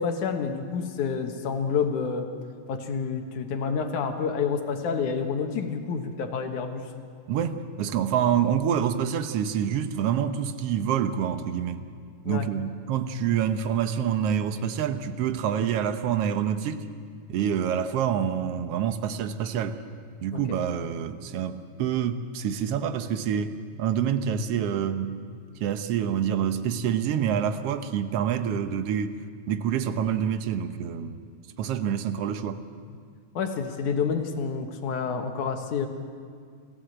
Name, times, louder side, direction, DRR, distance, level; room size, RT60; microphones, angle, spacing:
voice 1, 0.0-2.3 2.7-6.9 12.2-12.5 20.3-20.4 33.3-35.9, left 6 dB, 85° left, 5 dB, 3.0 m, -28 dB
voice 2, 7.3-11.8 12.3-16.9 17.3-19.8 20.2-25.2 25.6-29.1 29.5-31.2 31.6-32.6, right 8 dB, 65° right, 9 dB, 1.7 m, -27 dB
29.5 x 15.0 x 7.9 m, 2.1 s
omnidirectional pair, 3.4 m